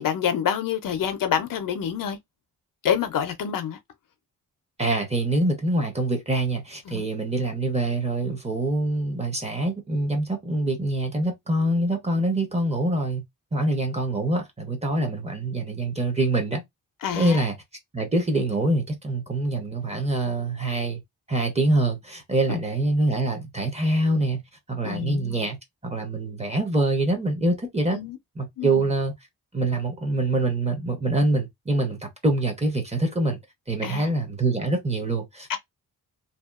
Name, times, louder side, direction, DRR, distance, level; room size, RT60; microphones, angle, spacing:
voice 1, 0.0-2.2 2.8-3.8 6.9-7.0 17.0-17.5 22.5-22.6 24.8-25.5 27.9-28.2 28.6-28.8 33.8-34.1 35.5-35.6, left 8 dB, 60° left, 0.5 m, -27 dB
voice 2, 4.8-13.2 13.5-16.6 17.1-17.5 17.9-21.0 21.3-24.4 24.7-25.6 25.8-28.0 28.4-29.1 29.5-33.4 33.7-35.6, right 2 dB, 15° right, 0.7 m, -25 dB
2.7 x 2.2 x 2.3 m
wide cardioid pair, 170°, 37 cm